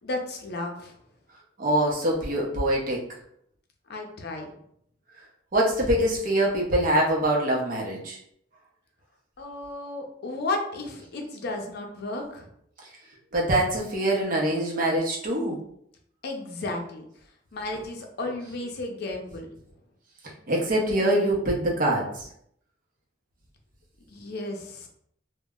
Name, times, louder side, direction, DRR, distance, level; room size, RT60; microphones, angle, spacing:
voice 1, 0.0-0.9 3.9-4.5 9.4-12.5 16.2-17.1 17.5-19.5 24.1-24.9, left 2 dB, 60° left, 2 dB, 0.5 m, -33 dB
voice 2, 1.6-3.0 5.5-8.2 13.3-15.6 20.5-22.3, right 1 dB, 50° right, -2 dB, 0.7 m, -24 dB
2.1 x 2.0 x 3.5 m, 0.70 s
head